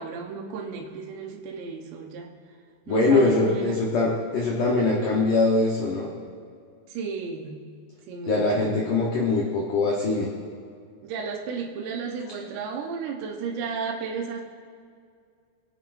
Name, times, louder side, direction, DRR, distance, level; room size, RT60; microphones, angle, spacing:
voice 1, 0.0-2.3 2.9-3.8 6.9-7.7 8.1-8.7 11.0-14.4, right 5 dB, 75° right, 0 dB, 2.9 m, -34 dB
voice 2, 2.9-6.1 8.3-10.3, left 3 dB, 90° left, -3 dB, 1.8 m, -22 dB
23.5 x 8.2 x 2.6 m, 2.2 s
omnidirectional pair, 5.5 m